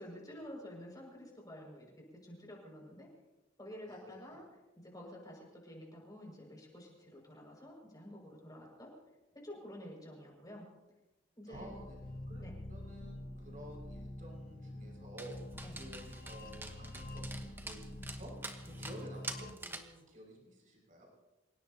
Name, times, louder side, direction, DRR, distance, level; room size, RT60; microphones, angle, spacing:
voice 1, 0.0-3.1 3.6-4.4 4.8-8.9 9.4-10.7 11.4-11.7 12.4-12.5 15.6-15.8, equal, 20° left, -1 dB, 6.1 m, -50 dB
voice 2, 3.9-4.4 11.5-11.9 12.3-15.4 15.7-21.1, right 1 dB, 45° right, -1 dB, 6.1 m, -52 dB
sound 1, 11.5-19.5, left 1 dB, 50° left, 1.3 m, -46 dB
Dog, 15.2-20.0, right 2 dB, 10° right, 1.2 m, -47 dB
27.5 x 17.5 x 2.9 m, 1.0 s
head